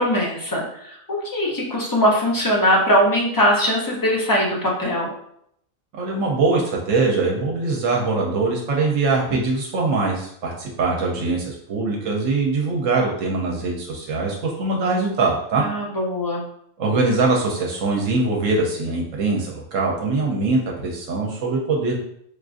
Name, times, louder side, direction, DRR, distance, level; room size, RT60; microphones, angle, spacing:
voice 1, 0.0-5.1 15.6-16.4, equal, 30° left, -3 dB, 0.4 m, -21 dB
voice 2, 5.9-15.6 16.8-22.0, right 3 dB, 75° right, -1 dB, 1.0 m, -22 dB
4.8 x 2.4 x 2.4 m, 0.71 s
omnidirectional pair, 1.4 m